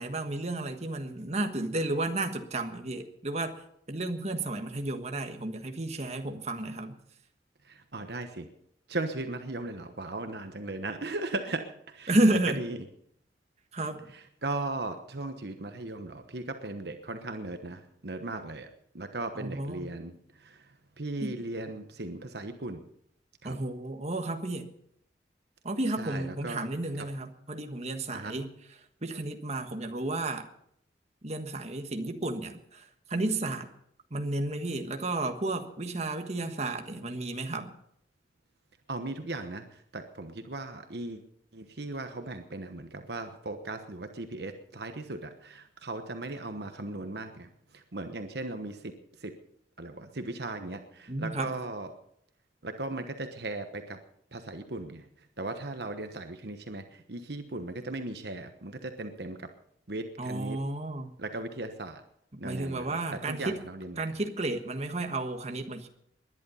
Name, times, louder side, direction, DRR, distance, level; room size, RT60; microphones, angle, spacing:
voice 1, 0.0-3.5 3.9-7.0 12.1-12.7 13.7-14.0 19.3-19.9 21.2-21.4 23.4-24.7 25.6-28.5 29.0-30.5 31.2-33.7 34.1-37.7 51.1-51.5 60.2-61.1 62.3-63.6 64.0-65.9, right 2 dB, 40° right, 6 dB, 1.4 m, -32 dB
voice 2, 7.7-8.5 8.9-11.7 11.9-12.1 12.6-12.8 14.4-18.7 18.9-20.1 20.4-20.6 21.0-22.8 23.4-23.6 26.0-26.7 27.0-27.1 28.1-28.4 38.9-39.6 39.9-41.2 41.5-47.5 47.7-48.8 49.2-49.3 49.8-51.9 52.6-54.0 54.3-55.0 55.4-59.5 59.9-60.6 61.2-62.0 62.4-63.9, right 2 dB, 65° right, 7 dB, 1.1 m, -37 dB
20.0 x 11.0 x 5.6 m, 0.71 s
head